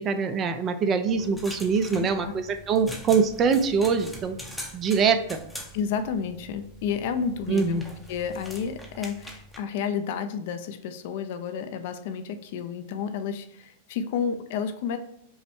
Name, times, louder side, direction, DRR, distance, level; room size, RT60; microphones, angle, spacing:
voice 1, 0.0-4.4 4.7-5.4 7.5-7.8, right 5 dB, 30° right, 8 dB, 0.5 m, -24 dB
sound 1, 1.1-9.6, equal, ahead, 0.8 m, -43 dB
voice 2, 2.0-2.3 5.7-7.8 8.1-15.0, left 7 dB, 60° left, 9 dB, 0.5 m, -31 dB
5.5 x 2.2 x 4.4 m, 0.72 s
hypercardioid pair, 125°, 0 cm